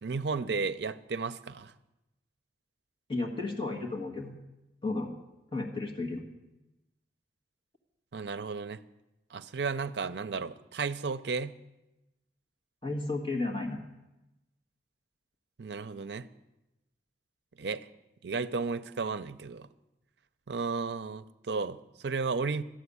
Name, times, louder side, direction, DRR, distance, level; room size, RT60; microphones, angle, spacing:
voice 1, 0.0-1.7 8.1-8.8 9.3-11.6 15.6-16.3 17.6-17.9 18.2-19.7 20.5-22.6, right 4 dB, 75° right, 12 dB, 0.5 m, -33 dB
voice 2, 3.1-4.3 4.8-5.1 5.5-6.2 12.8-13.8, left 2 dB, 30° left, 1 dB, 1.7 m, -33 dB
13.0 x 7.1 x 9.7 m, 0.98 s
head